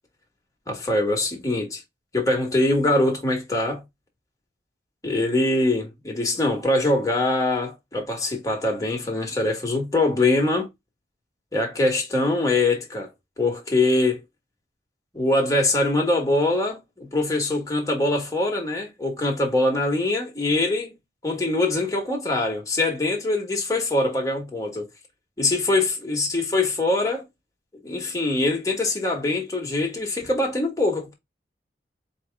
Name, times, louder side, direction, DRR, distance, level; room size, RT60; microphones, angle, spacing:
voice 1, 0.7-1.8 2.1-3.8 5.0-10.7 11.5-13.1 13.4-14.2 15.1-20.9 21.2-24.9 25.4-27.2 27.8-31.1, left 2 dB, 20° left, 1.4 m, -23 dB
4.3 x 3.1 x 3.4 m
head